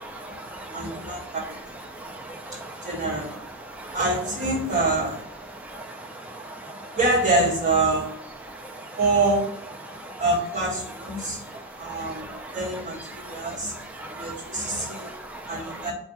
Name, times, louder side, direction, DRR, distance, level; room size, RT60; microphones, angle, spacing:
voice 1, 0.0-0.8 2.0-2.8 3.8-4.0 5.7-6.1 6.3-6.5 8.8-8.9 10.0-10.2 11.8-12.0 13.3-13.4 14.0-15.8, right 2 dB, 5° right, 2 dB, 0.4 m, -39 dB
voice 2, 0.7-1.4 2.5-3.5 3.9-5.2 6.9-8.1 9.0-9.4 10.2-11.4 11.8-13.7 14.1-15.1 15.5-15.9, right 2 dB, 35° right, -4 dB, 1.6 m, -25 dB
4.6 x 2.7 x 4.1 m, 0.64 s
head